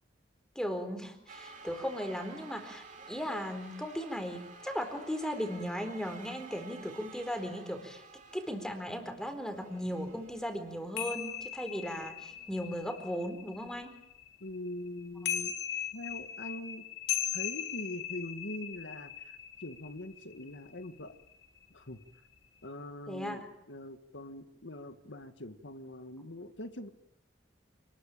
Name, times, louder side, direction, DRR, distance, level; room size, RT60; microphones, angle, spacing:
voice 1, 0.5-8.0 8.3-13.9 23.1-23.4, equal, 5° left, 7 dB, 4.3 m, -37 dB
sound 1, 1.3-12.8, right 4 dB, 40° right, 4.1 m, -53 dB
sound 2, 11.0-14.5 15.0-21.0 21.3-21.6, left 10 dB, 60° left, 3.0 m, -38 dB
voice 2, 14.4-15.6 15.9-16.9 17.3-21.2 21.7-22.0 22.6-26.9, left 1 dB, 75° left, 8 dB, 1.9 m, -43 dB
28.5 x 21.0 x 9.0 m, 0.79 s
head